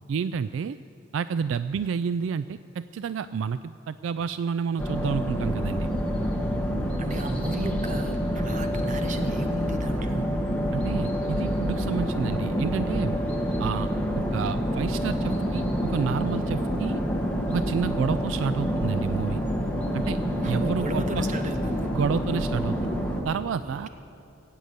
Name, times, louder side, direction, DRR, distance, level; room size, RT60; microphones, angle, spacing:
voice 1, 0.1-0.8 1.1-5.9 10.7-13.2 13.6-13.9 14.1-17.0 17.5-19.4 19.9-20.2 20.4-21.0 21.9-22.9 23.2-23.9, right 6 dB, 70° right, 13 dB, 0.3 m, -29 dB
sound 1, 4.8-23.2, equal, 5° left, 1.5 m, -27 dB
voice 2, 7.0-10.3 20.4-21.9 23.6-23.9, equal, 40° right, 6 dB, 1.1 m, -33 dB
16.5 x 9.0 x 8.1 m, 2.7 s
head